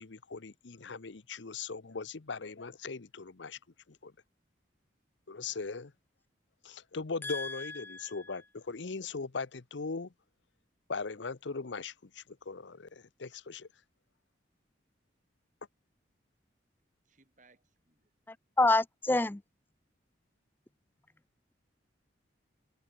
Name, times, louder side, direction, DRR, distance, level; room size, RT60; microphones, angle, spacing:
voice 1, 0.0-3.6 3.9-4.1 5.3-5.9 6.6-10.1 10.9-13.7, left 4 dB, 75° left, 0.8 m, -39 dB
voice 2, 7.2-8.1 18.3-19.4, left 2 dB, 10° left, 0.4 m, -29 dB
voice 3, 17.0-18.1, right 3 dB, 40° right, 7.9 m, -66 dB
head